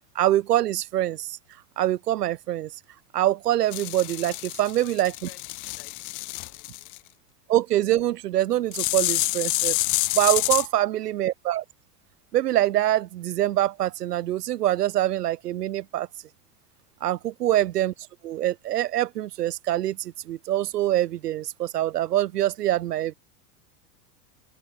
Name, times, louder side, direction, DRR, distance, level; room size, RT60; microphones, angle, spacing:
voice 1, 0.1-1.4 1.8-2.7 3.1-5.1 7.5-9.8 10.1-11.6 12.3-16.1 17.0-17.9 18.2-23.1, right 13 dB, 80° right, 1.1 m, -24 dB
sound 1, 3.7-7.0 8.7-10.7, left 23 dB, 40° left, 1.0 m, -28 dB
voice 2, 4.8-6.0 6.3-7.1, left 13 dB, 75° left, 5.3 m, -54 dB
open air
hypercardioid pair, 105°, 47 cm